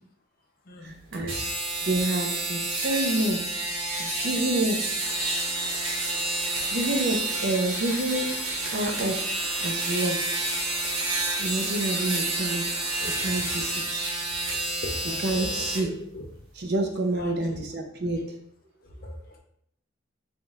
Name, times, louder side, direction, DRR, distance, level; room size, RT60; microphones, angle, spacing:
voice 1, 0.8-1.5 1.9-3.4 4.0-4.8 6.7-8.3 8.7-9.2 9.6-10.5 11.4-12.6 13.2-14.0 15.2-15.9 16.6-18.2, right 1 dB, 55° right, 2 dB, 0.5 m, -28 dB
sound 1, 1.1-15.8, right 2 dB, 90° right, 1.0 m, -29 dB
sound 2, 5.0-13.8, left 2 dB, 75° left, 0.8 m, -43 dB
voice 2, 13.0-13.4 14.8-15.2 15.8-16.2 17.0-17.6 19.0-19.4, left 1 dB, 45° left, 1 dB, 0.6 m, -39 dB
4.0 x 3.5 x 2.3 m, 0.71 s
head